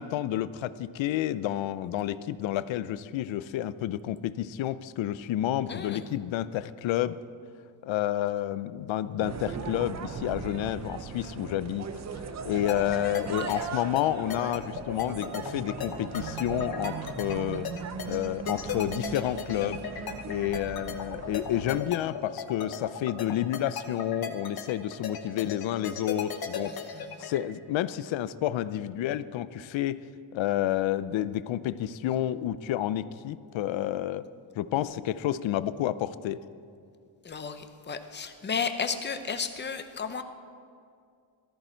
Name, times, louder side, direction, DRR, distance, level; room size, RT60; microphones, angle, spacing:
voice 1, 0.0-7.2 7.8-12.0 12.4-17.7 18.0-19.8 20.3-30.0 30.3-34.2 34.6-36.4, left 12 dB, 70° left, 15 dB, 0.6 m, -30 dB
voice 2, 5.7-6.1 13.4-13.6 18.1-18.2 26.6-27.2 37.2-40.2, left 5 dB, 20° left, 8 dB, 0.7 m, -34 dB
sound 1, 9.2-21.8, right 6 dB, 35° right, 0.7 m, -38 dB
sound 2, 12.7-27.4, left 7 dB, 50° left, 1.2 m, -36 dB
18.0 x 13.5 x 4.5 m, 2.3 s
cardioid pair, 155°, 48 cm